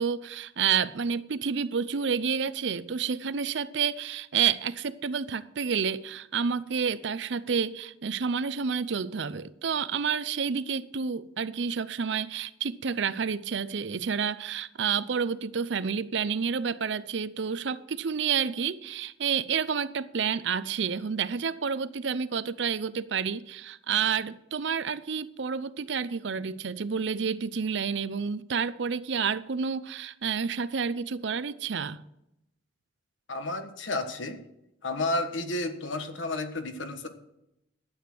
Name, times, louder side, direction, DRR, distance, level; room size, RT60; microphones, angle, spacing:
voice 1, 0.0-32.0, right 6 dB, 65° right, 0.6 m, -29 dB
voice 2, 33.3-34.4 34.8-37.1, left 2 dB, 75° left, 1.4 m, -31 dB
12.5 x 8.8 x 6.1 m
head